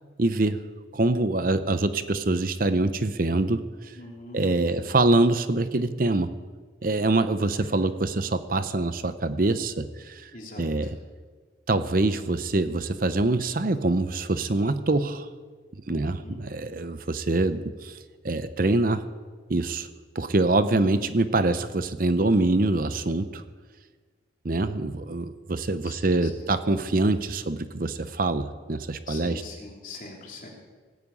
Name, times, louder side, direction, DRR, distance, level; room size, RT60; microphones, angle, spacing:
voice 1, 0.2-0.6 0.9-4.0 4.3-6.3 6.8-10.3 10.6-10.9 11.7-15.3 15.9-18.0 18.2-19.0 19.5-19.9 20.1-23.4 24.4-29.4, right 2 dB, 45° right, 11 dB, 0.7 m, -25 dB
voice 2, 3.9-5.1 7.4-7.8 10.3-10.9 15.9-16.4 25.8-26.5 29.1-30.5, left 2 dB, 45° left, -1 dB, 3.4 m, -43 dB
18.0 x 9.3 x 8.5 m, 1.5 s
head